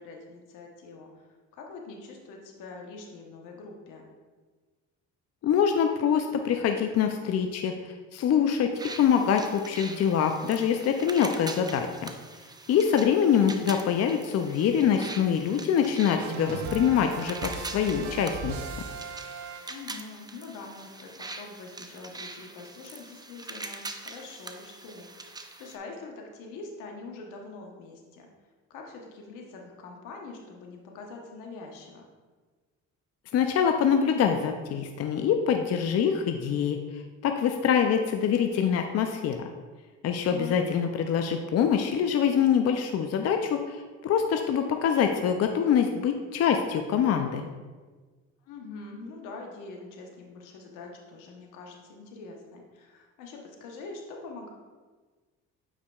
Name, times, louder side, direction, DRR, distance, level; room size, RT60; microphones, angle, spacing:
voice 1, 0.0-4.0 11.2-11.4 12.8-13.1 19.6-28.3 28.7-32.0 40.3-40.6 48.4-54.5, left 3 dB, 85° left, 1 dB, 1.1 m, -44 dB
voice 2, 5.4-12.1 12.7-18.6 33.3-39.4 40.0-47.5, left 8 dB, 55° left, 5 dB, 0.5 m, -25 dB
sound 1, 8.8-25.8, right 3 dB, 15° right, 0.5 m, -43 dB
sound 2, 16.2-20.1, right 5 dB, 65° right, 0.6 m, -38 dB
8.3 x 4.8 x 2.4 m, 1.4 s
supercardioid pair, 75°, 31 cm